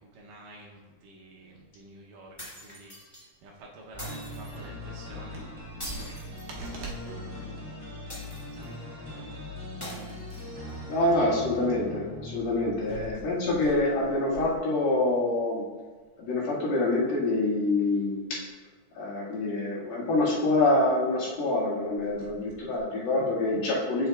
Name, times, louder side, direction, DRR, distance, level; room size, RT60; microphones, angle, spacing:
voice 1, 0.0-7.0 8.5-8.9 10.8-10.9 12.9-13.2 22.2-22.3, right 3 dB, 75° right, -2 dB, 2.1 m, -46 dB
sound 1, 2.4-3.2 4.0-4.6 5.8-7.0 8.1-8.8 9.8-10.8, equal, 10° left, 1.0 m, -43 dB
sound 2, 3.9-13.8, left 1 dB, 35° right, 1.0 m, -41 dB
voice 2, 10.9-15.6 16.2-18.4 19.0-24.1, left 2 dB, 85° left, -7 dB, 3.9 m, -26 dB
8.3 x 7.1 x 2.3 m, 1.3 s
omnidirectional pair, 4.3 m